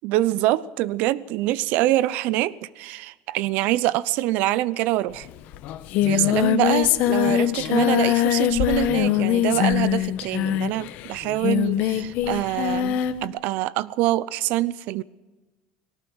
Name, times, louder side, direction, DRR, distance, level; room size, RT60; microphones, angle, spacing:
voice 1, 0.0-5.3 6.0-15.0, right 15 dB, 55° right, 0.7 m, -25 dB
Singing, 5.2-5.3 5.5-13.2, left 12 dB, 50° left, 1.1 m, -22 dB
19.0 x 17.0 x 8.0 m
cardioid pair, 165°, 3 cm